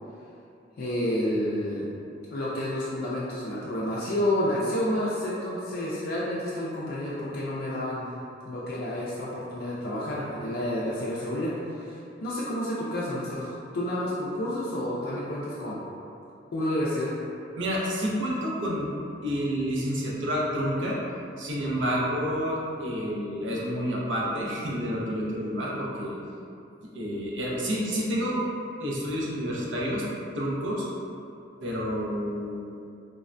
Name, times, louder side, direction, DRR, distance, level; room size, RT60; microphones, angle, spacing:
voice 1, 0.8-1.9 2.3-8.1 8.4-11.5 11.8-15.8 16.5-17.1, left 1 dB, 55° left, -7 dB, 0.4 m, -30 dB
voice 2, 17.6-18.9 19.2-21.0 21.4-26.2 26.8-28.4 28.8-30.0 30.3-30.9 31.6-32.6, equal, 80° right, -5 dB, 0.6 m, -29 dB
3.3 x 2.1 x 2.5 m, 2.6 s
head